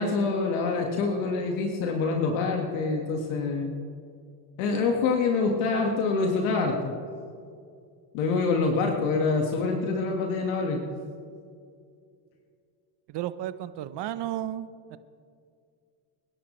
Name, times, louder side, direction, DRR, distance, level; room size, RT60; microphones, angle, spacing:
voice 1, 0.0-3.7 4.6-6.9 8.1-10.8, left 4 dB, 75° left, 2 dB, 1.9 m, -26 dB
voice 2, 13.1-15.0, right 12 dB, 55° right, 13 dB, 1.0 m, -33 dB
28.0 x 11.0 x 3.2 m, 2.3 s
supercardioid pair, 75°, 50 cm